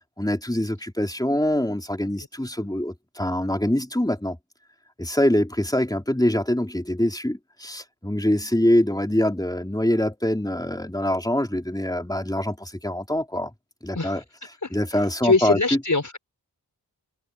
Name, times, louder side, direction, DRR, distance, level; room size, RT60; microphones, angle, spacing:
voice 1, 0.2-4.4 5.0-13.5 13.8-14.2 14.7-15.6, left 1 dB, 10° left, 3.6 m, -24 dB
voice 2, 14.6-16.2, left 3 dB, 45° left, 6.5 m, -24 dB
wide cardioid pair, 70°, 40 cm